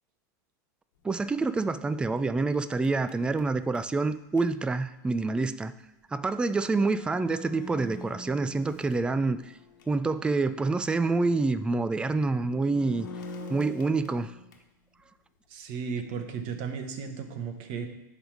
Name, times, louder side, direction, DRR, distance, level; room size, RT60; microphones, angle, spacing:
voice 1, 1.0-5.7 6.1-9.4 9.9-13.1 13.5-14.3, right 3 dB, 10° right, 12 dB, 0.3 m, -27 dB
sound 1, 1.2-4.4 6.3-6.4 6.8-10.0 10.4-10.5 12.3-14.8, left 2 dB, 80° left, 1.3 m, -45 dB
voice 2, 15.5-17.9, right 6 dB, 55° right, 6 dB, 1.1 m, -35 dB
10.0 x 3.5 x 4.8 m, 0.89 s
hypercardioid pair, 105°, 11 cm